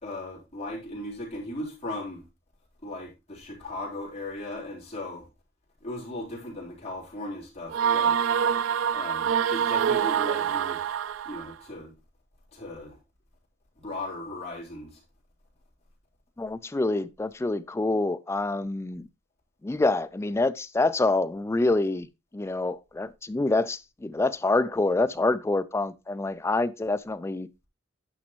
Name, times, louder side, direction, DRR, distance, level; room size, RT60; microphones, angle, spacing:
voice 1, 0.0-2.2 2.8-5.3 5.8-8.2 8.9-10.8 11.2-11.9 12.5-13.0 13.8-15.0, left 1 dB, 35° left, 3.7 m, -37 dB
sound 1, 7.7-11.5, right 8 dB, 85° right, 0.3 m, -25 dB
voice 2, 16.4-19.1 19.6-22.1 22.3-27.5, left 2 dB, 15° left, 0.3 m, -26 dB
10.0 x 6.2 x 3.0 m
head